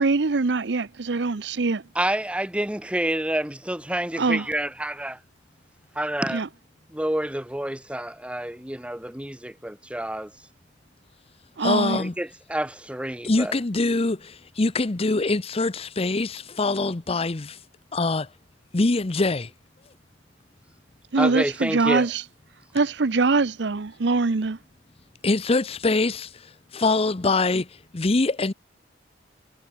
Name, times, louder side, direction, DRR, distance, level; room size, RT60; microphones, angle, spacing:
voice 1, 0.0-1.8 4.2-4.4 6.3-6.5 11.6-12.0 21.1-22.2 22.7-24.6, right 3 dB, 65° right, 0.7 m, -23 dB
voice 2, 1.9-5.2 5.9-6.4 6.9-10.3 12.0-13.5 21.2-22.1, right 1 dB, 5° right, 1.1 m, -28 dB
voice 3, 11.6-12.1 13.2-17.6 17.9-18.3 18.7-19.5 25.2-26.4 26.7-27.7 27.9-28.5, left 3 dB, 35° left, 0.7 m, -24 dB
head